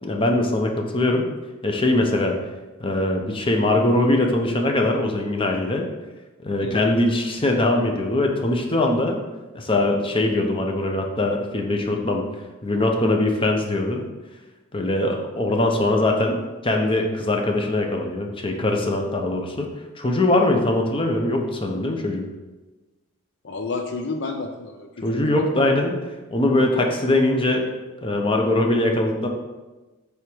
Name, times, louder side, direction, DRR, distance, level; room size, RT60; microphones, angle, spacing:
voice 1, 0.0-1.3 1.6-2.4 2.8-5.9 6.4-9.2 9.5-12.2 12.6-14.0 14.7-16.4 16.6-19.7 20.0-22.2 25.0-25.9 26.3-27.7 28.0-29.3, left 2 dB, 25° left, 2 dB, 0.8 m, -21 dB
voice 2, 6.6-6.9 23.4-25.4, left 3 dB, 55° left, 4 dB, 0.5 m, -31 dB
8.0 x 3.5 x 6.1 m, 1.2 s
head